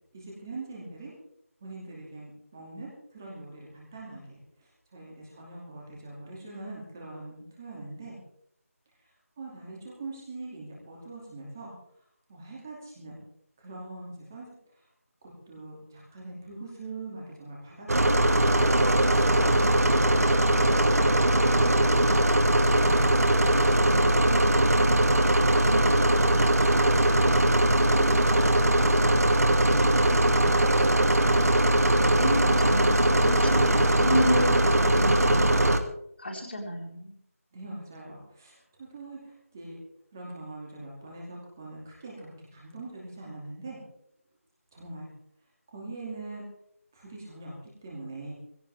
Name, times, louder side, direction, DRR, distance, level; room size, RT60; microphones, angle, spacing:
voice 1, 0.1-1.1 1.6-8.2 9.4-11.7 12.3-13.2 13.6-14.8 15.2-17.9 37.5-39.7 40.1-43.8 44.7-45.1 45.7-46.4 46.9-47.5 47.8-48.3, right 2 dB, 15° right, -4 dB, 2.6 m, -42 dB
sound 1, 17.9-35.8, right 1 dB, 85° right, 2.1 m, -21 dB
voice 2, 25.6-26.2 32.2-35.8 36.2-37.2, left 1 dB, 45° left, 0 dB, 3.7 m, -31 dB
19.0 x 16.5 x 3.6 m, 0.69 s
figure-of-eight pair, 180°, 8 cm